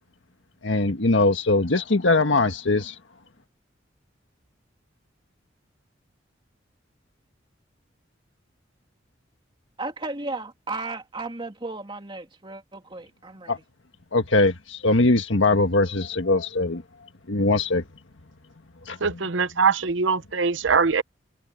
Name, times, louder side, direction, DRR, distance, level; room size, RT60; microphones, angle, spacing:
voice 1, 0.6-2.9 13.5-13.6 14.1-16.8 17.3-17.8 18.9-19.0, left 2 dB, 85° left, 1.5 m, -21 dB
voice 2, 9.8-13.6, right 3 dB, 25° right, 2.5 m, -34 dB
voice 3, 19.0-21.0, right 5 dB, 80° right, 0.8 m, -22 dB
head